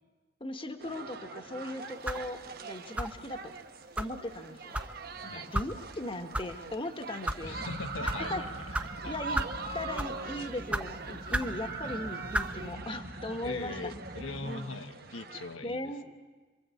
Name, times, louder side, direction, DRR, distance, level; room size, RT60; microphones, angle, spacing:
voice 1, 0.4-3.5 4.0-4.7 5.2-7.6 8.0-8.4 9.1-9.4 9.7-13.7 14.4-14.8 15.6-16.1, left 1 dB, 25° left, 7 dB, 1.6 m, -38 dB
sound 1, 0.8-15.6, right 4 dB, 50° right, 1.4 m, -43 dB
sound 2, 2.0-2.3 3.0-3.2 4.0-4.1 4.7-4.9 5.5-5.7 6.3-6.5 7.1-7.4 8.0-8.2 8.7-8.9 9.3-9.6 9.9-10.2 10.7-10.9 11.3-11.5 12.3-12.5, right 1 dB, 5° right, 0.9 m, -32 dB
voice 2, 5.2-5.5 7.4-9.2 13.4-15.9, left 3 dB, 85° left, 6 dB, 1.4 m, -41 dB
sound 3, 7.4-14.5, right 2 dB, 30° right, 1.4 m, -43 dB
27.5 x 23.5 x 8.5 m, 1.3 s
head